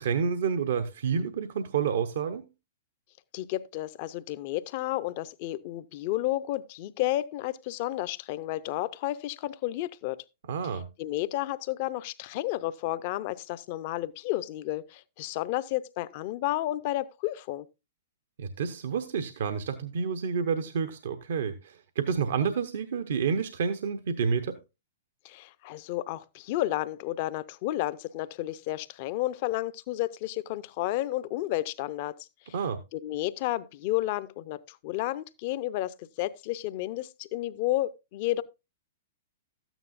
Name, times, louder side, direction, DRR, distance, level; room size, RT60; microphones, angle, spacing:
voice 1, 0.0-2.4 10.5-10.9 18.4-24.6 32.5-32.8, right 6 dB, 65° right, 0.8 m, -29 dB
voice 2, 3.3-10.2 10.7-17.7 25.2-32.5 32.9-38.4, left 15 dB, 45° left, 0.7 m, -32 dB
13.0 x 9.0 x 2.5 m
hypercardioid pair, 115°, 0 cm